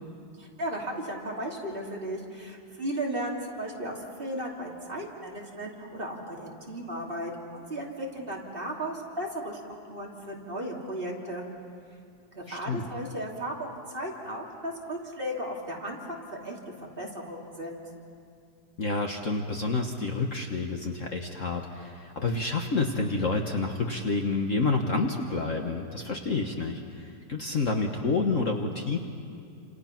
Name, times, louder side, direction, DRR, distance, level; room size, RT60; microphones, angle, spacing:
voice 1, 0.4-9.6 9.9-11.4 12.3-17.8, right 1 dB, 30° right, -2 dB, 3.1 m, -35 dB
voice 2, 12.5-12.8 18.8-29.0, left 3 dB, 45° left, 3 dB, 1.5 m, -29 dB
29.5 x 27.5 x 5.9 m, 2.5 s
omnidirectional pair, 2.0 m